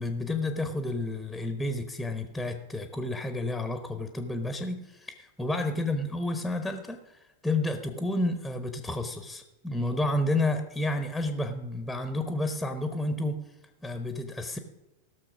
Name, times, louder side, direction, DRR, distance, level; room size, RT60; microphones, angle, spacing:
voice 1, 0.0-13.4 13.8-14.6, left 2 dB, ahead, 7 dB, 1.0 m, -31 dB
16.0 x 6.5 x 6.2 m, 0.99 s
figure-of-eight pair, 90°, 0 cm